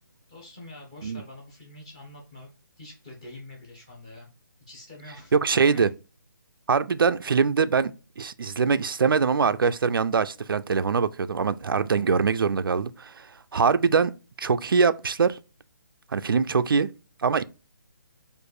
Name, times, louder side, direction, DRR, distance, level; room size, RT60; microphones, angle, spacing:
voice 1, 0.3-2.5 2.8-4.3 4.7-5.9 16.2-16.5, left 2 dB, 15° left, 0.9 m, -45 dB
voice 2, 5.3-5.9 6.7-7.9 8.2-13.3 13.5-14.1 14.4-15.4 16.1-16.9 17.2-17.4, right 5 dB, 90° right, 0.4 m, -23 dB
4.3 x 2.6 x 4.7 m
hypercardioid pair, 180°, 11 cm